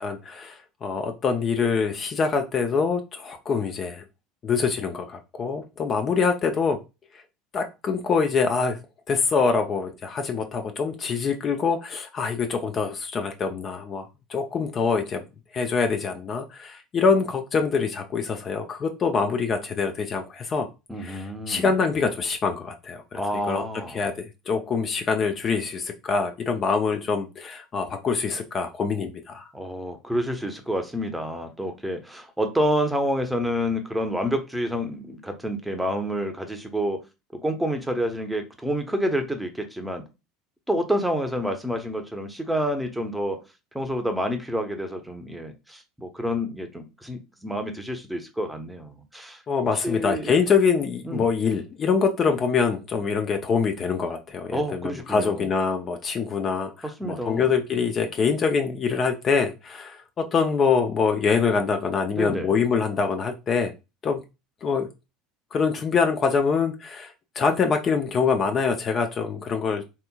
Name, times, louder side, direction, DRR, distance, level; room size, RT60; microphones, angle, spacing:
voice 1, 0.0-4.0 4.4-6.8 7.5-8.8 9.1-15.2 15.5-20.7 21.0-23.2 23.5-23.6 23.9-29.5 49.5-63.7 64.0-64.2 64.6-64.9 65.5-69.9, left 5 dB, 35° left, 0.5 m, -25 dB
voice 2, 20.9-21.7 23.1-24.0 29.5-37.0 37.3-40.0 40.7-43.4 43.7-49.4 49.8-50.3 51.0-51.3 54.5-55.5 56.8-57.5 62.2-62.5, equal, 5° right, 0.7 m, -28 dB
3.4 x 2.9 x 2.2 m
figure-of-eight pair, 70°, 0 cm